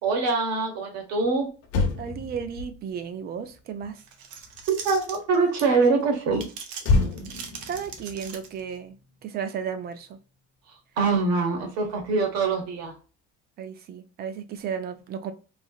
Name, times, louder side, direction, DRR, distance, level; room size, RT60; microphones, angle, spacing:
voice 1, 0.0-1.5 4.7-6.4 11.0-13.0, right 4 dB, 60° right, 3 dB, 1.1 m, -24 dB
Motor vehicle (road), 1.2-1.3 1.6-5.2 6.8-9.4 9.7-9.9, left 3 dB, 60° left, 0.8 m, -30 dB
voice 2, 2.0-4.0 7.7-9.0 9.2-10.2 13.6-15.3, right 7 dB, 35° right, 10 dB, 0.4 m, -34 dB
sound 1, 4.0-5.9 6.3-8.8, right 6 dB, 85° right, 0.8 m, -40 dB
3.2 x 2.8 x 2.3 m, 0.34 s
cardioid pair, 175°, 29 cm